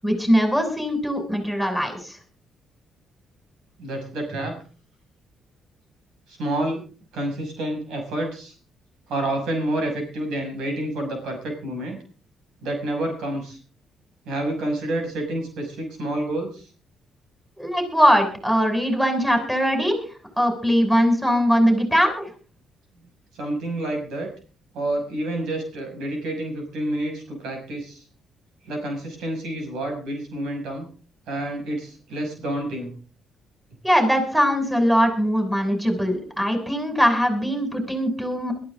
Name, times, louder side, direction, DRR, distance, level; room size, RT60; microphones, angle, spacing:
voice 1, 0.0-2.2 17.6-20.0 20.4-22.2 33.8-38.5, equal, 5° right, 3 dB, 7.0 m, -21 dB
voice 2, 3.8-4.6 6.3-6.8 7.1-8.6 9.1-12.0 12.6-13.6 14.2-16.7 23.3-24.3 24.7-28.0 28.6-30.9 31.3-32.9, right 1 dB, 85° right, 4 dB, 6.3 m, -28 dB
22.0 x 14.0 x 3.8 m, 0.39 s
cardioid pair, 90°, 0 cm